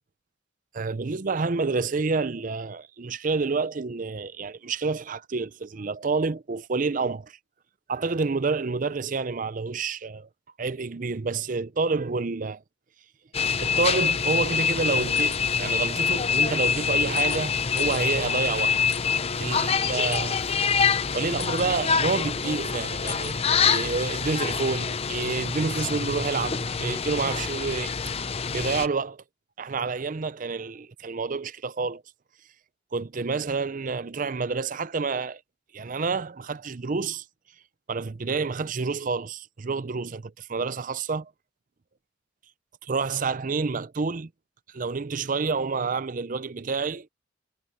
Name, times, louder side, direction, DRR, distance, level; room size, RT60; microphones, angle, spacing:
voice 1, 0.7-7.4 7.9-10.3 10.6-12.6 13.6-18.8 19.4-20.4 21.1-23.4 23.6-27.9 28.5-29.2 29.6-32.0 32.9-35.4 35.7-37.2 37.9-41.3 42.8-44.3 44.7-47.1, right 4 dB, 40° right, 0.5 m, -28 dB
sound 1, 13.3-28.9, left 6 dB, 30° left, 0.6 m, -26 dB
sound 2, 15.1-15.4 15.9-16.0 17.1-17.4 17.8-18.0 18.9-19.0 20.1-20.2 21.4-21.6 23.1-23.3, left 14 dB, 65° left, 7.4 m, -38 dB
head